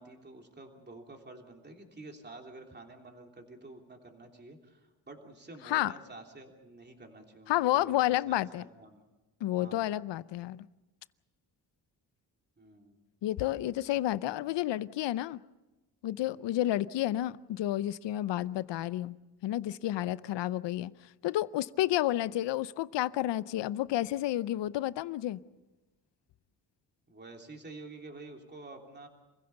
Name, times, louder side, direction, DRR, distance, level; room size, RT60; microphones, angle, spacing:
voice 1, 0.0-9.0 9.6-9.9 12.6-13.0 16.2-16.5 19.8-20.2 27.1-29.1, right 2 dB, 25° right, 2 dB, 3.2 m, -49 dB
voice 2, 7.5-8.6 9.4-10.7 13.2-15.4 16.0-19.2 19.4-20.9 21.2-25.4, left 14 dB, 85° left, 17 dB, 0.7 m, -30 dB
27.5 x 16.0 x 6.9 m, 1.1 s
cardioid pair, 90°, 42 cm